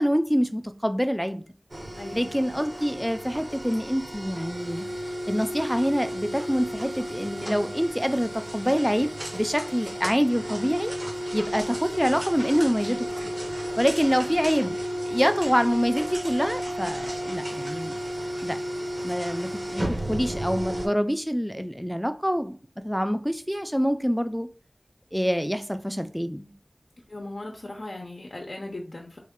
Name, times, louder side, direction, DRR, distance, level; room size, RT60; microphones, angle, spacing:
voice 1, 0.0-1.4 2.1-4.9 5.3-10.9 11.3-13.0 13.2-13.3 13.8-14.8 15.1-18.0 18.4-18.6 19.0-22.6 22.8-24.5 25.1-26.5, equal, ahead, 8 dB, 0.4 m, -26 dB
sound 1, 1.7-20.9, equal, 65° right, 0.9 m, -33 dB
voice 2, 2.0-2.3 27.1-29.2, left 2 dB, 75° left, 1 dB, 0.5 m, -38 dB
3.2 x 2.2 x 3.6 m, 0.40 s
wide cardioid pair, 40°, 0 cm